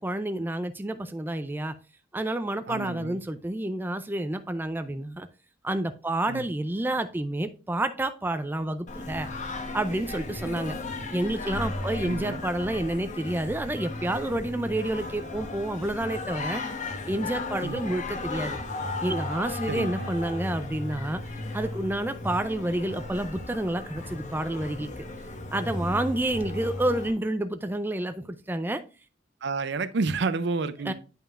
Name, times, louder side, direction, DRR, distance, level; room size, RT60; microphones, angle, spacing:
voice 1, 0.0-1.7 2.1-5.3 5.6-9.3 9.7-10.7 11.1-16.6 17.1-18.6 19.0-21.2 21.5-25.0 25.5-28.8 30.9-31.0, right 1 dB, 10° right, 0.4 m, -29 dB
voice 2, 2.7-3.2 6.3-6.4 12.0-12.4 17.6-17.8 19.7-20.1 29.4-30.9, right 3 dB, 60° right, 0.5 m, -30 dB
Singing, 8.9-27.1, left 2 dB, 40° left, 1.0 m, -35 dB
9.0 x 5.5 x 2.4 m
head